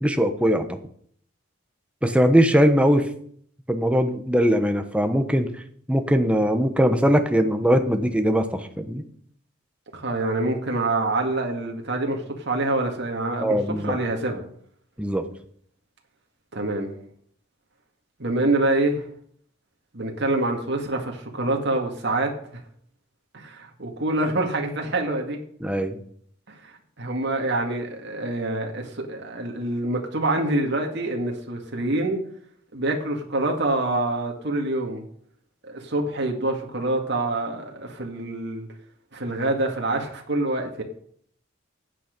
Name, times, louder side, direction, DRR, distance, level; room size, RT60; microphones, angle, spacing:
voice 1, 0.0-0.6 2.0-3.1 3.7-5.5 5.9-9.0 13.4-14.0 15.0-15.2 25.6-26.0, equal, 5° right, 1.1 m, -20 dB
voice 2, 9.9-14.5 16.5-16.9 18.2-19.1 19.9-22.3 23.3-25.4 26.5-32.2 32.7-35.0 35.6-38.7 39.1-40.8, right 2 dB, 55° right, 2.3 m, -26 dB
15.0 x 8.4 x 5.4 m
head